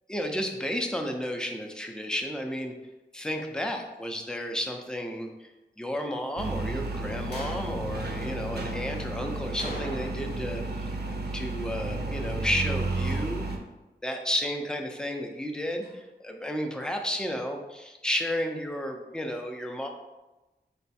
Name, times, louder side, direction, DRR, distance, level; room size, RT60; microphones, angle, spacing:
voice 1, 0.1-2.7 3.1-5.5 5.8-10.9 11.3-13.5 14.0-19.9, equal, 5° left, 3 dB, 0.5 m, -32 dB
sound 1, 6.4-13.6, right 2 dB, 65° right, 0.5 m, -32 dB
sound 2, 7.3-7.8 9.6-10.4 10.7-10.8 15.8-15.9, equal, 70° left, 0.9 m, -40 dB
4.3 x 2.3 x 4.1 m, 1.1 s
wide cardioid pair, 70°, 18 cm